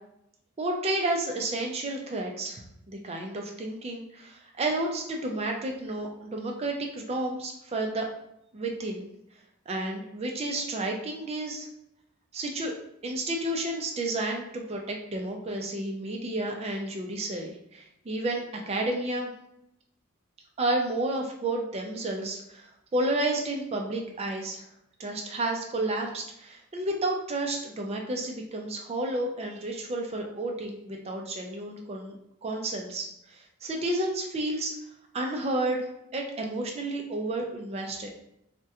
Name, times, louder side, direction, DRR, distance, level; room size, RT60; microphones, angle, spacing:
voice 1, 0.6-8.1 8.5-9.1 9.7-11.7 12.3-12.7 13.0-19.3 20.6-24.6 25.0-32.1 32.4-34.7 35.1-35.9 36.1-38.1, right 2 dB, 30° right, 1 dB, 0.4 m, -31 dB
3.5 x 2.1 x 2.7 m, 0.79 s
head